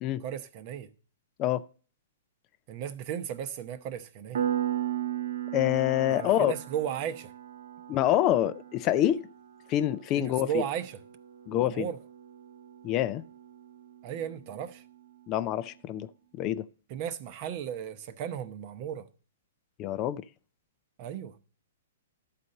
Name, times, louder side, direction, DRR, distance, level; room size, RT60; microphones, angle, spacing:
voice 1, 0.2-0.9 2.7-4.4 6.1-7.3 10.2-11.0 11.5-12.0 14.0-14.8 16.9-19.1 21.0-21.4, right 9 dB, 40° right, 0.8 m, -35 dB
Piano, 4.3-14.7, right 10 dB, 70° right, 1.0 m, -37 dB
voice 2, 5.5-6.5 7.9-9.3 9.7-10.6 11.5-11.9 12.8-13.2 15.3-16.1 16.4-16.7 19.8-20.2, left 12 dB, 30° left, 0.4 m, -26 dB
12.5 x 4.2 x 6.5 m
hypercardioid pair, 150°, 0 cm